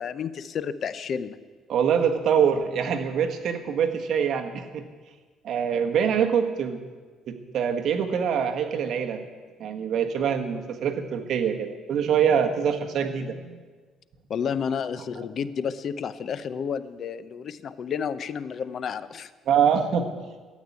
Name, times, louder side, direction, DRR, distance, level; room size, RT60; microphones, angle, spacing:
voice 1, 0.0-1.4 14.3-19.3, left 7 dB, 45° left, 15 dB, 0.5 m, -31 dB
voice 2, 1.7-4.8 5.4-6.8 7.3-9.2 9.6-13.6 19.5-20.1, right 7 dB, 55° right, 5 dB, 1.4 m, -24 dB
13.0 x 8.5 x 9.3 m, 1.4 s
cardioid pair, 140°, 0 cm